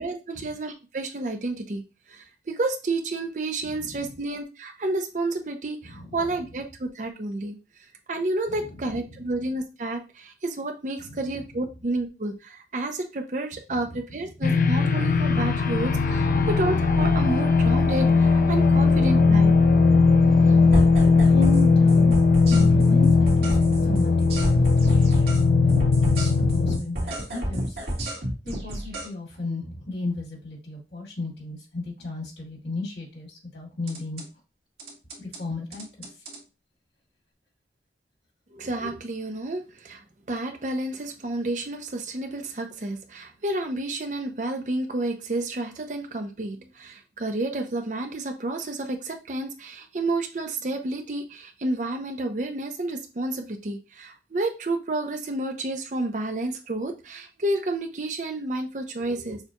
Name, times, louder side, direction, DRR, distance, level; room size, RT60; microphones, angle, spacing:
voice 1, 0.0-1.8 2.1-7.6 8.1-19.5 21.0-21.1 38.5-59.4, right 2 dB, 45° right, 5 dB, 0.6 m, -30 dB
voice 2, 3.6-4.1 5.8-6.3 8.5-9.2 11.0-11.4 13.7-14.3 20.1-20.8 21.2-34.2 35.2-36.1, left 3 dB, 70° left, -3 dB, 2.5 m, -36 dB
sound 1, 14.4-26.8, left 4 dB, 50° left, 0.4 m, -19 dB
sound 2, 20.7-21.6 21.9-25.4 25.7-29.1 33.9-34.2 34.8-35.4 35.7-36.4, right 1 dB, 65° right, 2.0 m, -30 dB
6.5 x 2.4 x 2.9 m, 0.30 s
head